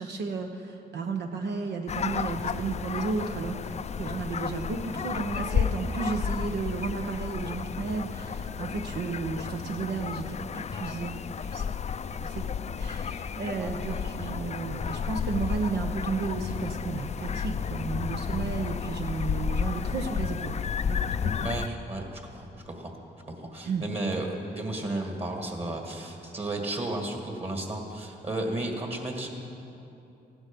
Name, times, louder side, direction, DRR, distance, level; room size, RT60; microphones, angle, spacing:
voice 1, 0.0-3.6 4.0-11.1 11.4-11.6 12.2-12.5 12.8-20.6 20.9-21.4 23.6-23.8, right 4 dB, 75° right, 3 dB, 1.0 m, -33 dB
sound 1, 1.9-21.7, left 6 dB, 40° left, 0.4 m, -32 dB
voice 2, 13.5-14.0 21.4-22.9 23.4-29.3, right 2 dB, 35° right, 2 dB, 2.0 m, -33 dB
15.0 x 12.0 x 5.3 m, 2.8 s
cardioid pair, 75°, 17 cm